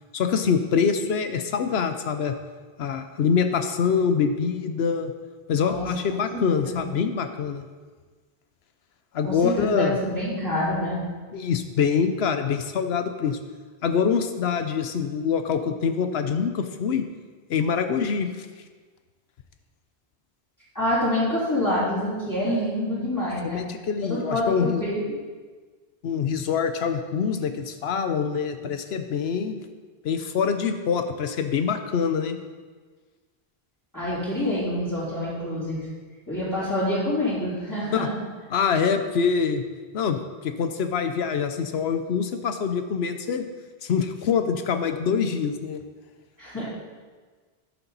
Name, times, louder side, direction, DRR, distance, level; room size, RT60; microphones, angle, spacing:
voice 1, 0.1-2.3 2.8-5.1 5.5-7.6 9.1-9.9 11.3-13.4 13.8-17.0 17.5-18.5 23.4-24.8 26.0-29.6 30.0-32.4 37.9-38.1 38.5-39.6 39.9-43.4 43.8-45.8, left 6 dB, 80° left, 8 dB, 0.9 m, -25 dB
voice 2, 6.3-6.8 9.2-11.0 20.7-23.6 24.0-25.1 33.9-35.8 36.3-38.2 46.4-46.6, left 1 dB, 15° left, -11 dB, 3.0 m, -27 dB
11.5 x 6.9 x 4.0 m, 1.4 s
omnidirectional pair, 1.0 m